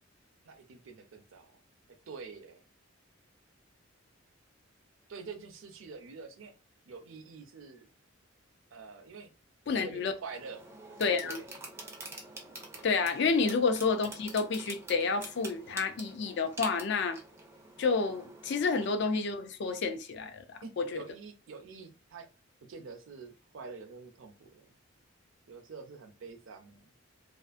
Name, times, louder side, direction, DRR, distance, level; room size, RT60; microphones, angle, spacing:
voice 1, 0.4-1.6 2.1-2.6 5.1-6.5 6.9-7.9 8.7-9.3 9.7-10.6 11.2-11.5 13.4-13.7 20.6-22.3 22.6-24.8 25.5-26.9, right 4 dB, 70° right, 0.5 m, -46 dB
voice 2, 9.7-10.1 11.0-11.4 12.8-17.2 17.8-21.0, left 4 dB, 55° left, 0.4 m, -30 dB
sound 1, 10.3-18.9, right 2 dB, 10° right, 0.4 m, -47 dB
2.5 x 2.4 x 2.4 m
head